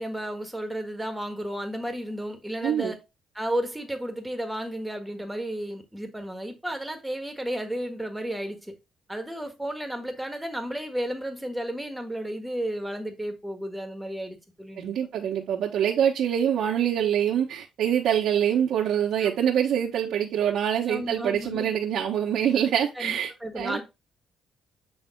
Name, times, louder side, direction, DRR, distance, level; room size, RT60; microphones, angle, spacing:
voice 1, 0.0-3.0 3.3-8.7 9.1-14.9 19.2-19.3 20.9-21.8 22.9-23.8, right 1 dB, 5° right, 1.5 m, -33 dB
voice 2, 2.6-2.9 14.8-23.3 23.5-23.8, right 9 dB, 75° right, 1.2 m, -25 dB
8.0 x 3.5 x 3.7 m
cardioid pair, 90°, 0 cm